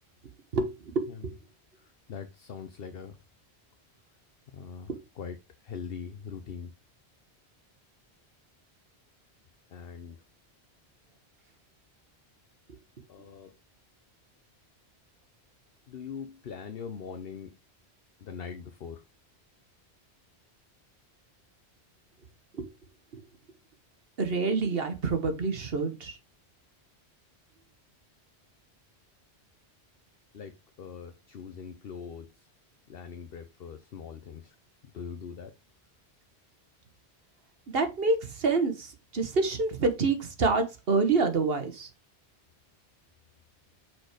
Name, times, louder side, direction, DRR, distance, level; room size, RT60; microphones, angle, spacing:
voice 1, 0.5-1.3 4.9-5.0 22.5-22.7 24.2-26.2 37.7-41.9, right 4 dB, 60° right, 1.4 m, -27 dB
voice 2, 1.8-3.2 4.5-5.4 5.6-6.7 9.7-10.2 13.1-13.5 15.9-17.6 18.2-19.0 30.3-32.5 32.9-34.5 34.9-35.5, left 6 dB, 65° left, 0.9 m, -42 dB
6.0 x 4.4 x 5.0 m
omnidirectional pair, 1.1 m